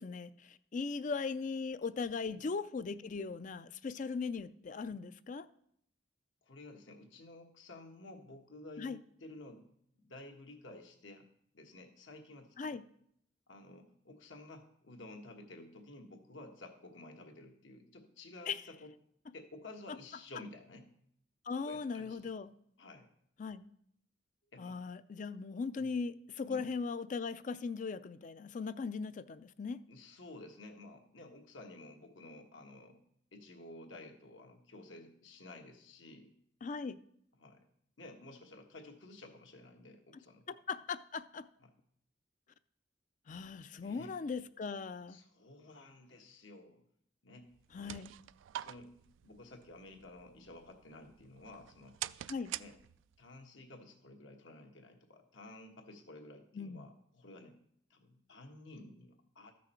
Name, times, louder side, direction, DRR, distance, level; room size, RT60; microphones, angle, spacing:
voice 1, 0.0-5.5 8.8-9.0 12.6-12.8 18.5-18.6 21.5-22.5 23.4-23.7 24.6-29.8 36.6-37.0 40.5-41.5 43.3-45.2 47.7-48.2 52.3-52.5 56.5-56.9, left 5 dB, 40° left, 0.4 m, -39 dB
voice 2, 6.4-9.7 9.9-11.3 11.5-12.8 13.5-18.9 19.3-20.9 21.6-22.3 22.8-23.1 24.5-24.8 25.8-25.9 26.4-26.7 29.9-33.0 33.3-36.3 37.4-37.6 38.0-40.5 41.6-41.7 43.8-44.1 45.1-46.8 47.2-48.0 48.6-48.9 49.2-52.0 52.6-52.8 53.2-57.6 57.9-59.5, left 2 dB, 80° left, 1.5 m, -53 dB
sound 1, 47.5-53.3, right 13 dB, 85° right, 0.3 m, -47 dB
13.5 x 6.2 x 4.4 m
head